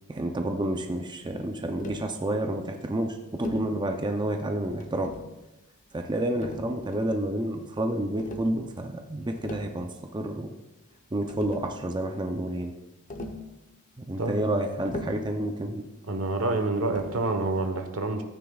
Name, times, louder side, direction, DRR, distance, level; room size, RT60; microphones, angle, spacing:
voice 1, 0.1-5.1 5.9-10.6 11.1-12.7 14.0-15.9, right 1 dB, 20° right, 4 dB, 0.6 m, -29 dB
Tap, 1.8-2.1 3.4-3.7 4.8-5.4 6.4-7.2 8.2-8.5 9.2-9.8 10.9-11.0 11.3-11.8 13.1-13.5 14.9-15.3 16.9-17.3, left 2 dB, 35° left, 0.9 m, -39 dB
voice 2, 16.1-18.2, right 2 dB, 75° right, 6 dB, 1.1 m, -27 dB
13.5 x 9.3 x 2.4 m, 1.0 s
head